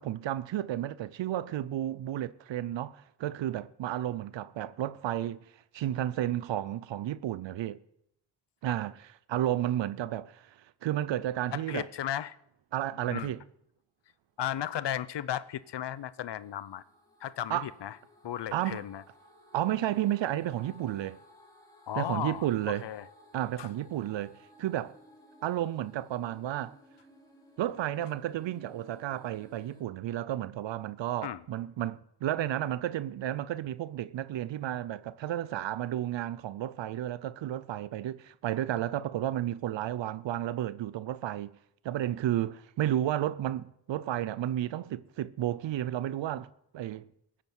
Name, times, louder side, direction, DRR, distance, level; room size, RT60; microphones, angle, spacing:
voice 1, 0.0-5.4 5.7-7.8 8.6-11.9 12.7-13.4 17.5-17.7 18.5-18.8 19.5-21.2 22.0-22.9 23.3-25.0 25.4-26.8 27.6-41.5 41.8-46.5 46.7-47.1, right 12 dB, 80° right, 0.6 m, -32 dB
voice 2, 11.5-12.3 13.1-13.3 14.4-16.8 17.2-18.0 18.2-19.0 21.9-23.1 23.6-23.7 31.2-31.4, left 11 dB, 70° left, 0.7 m, -35 dB
sound 1, 15.1-29.8, left 1 dB, 10° left, 3.5 m, -58 dB
15.5 x 8.8 x 8.1 m
cardioid pair, 65°, 44 cm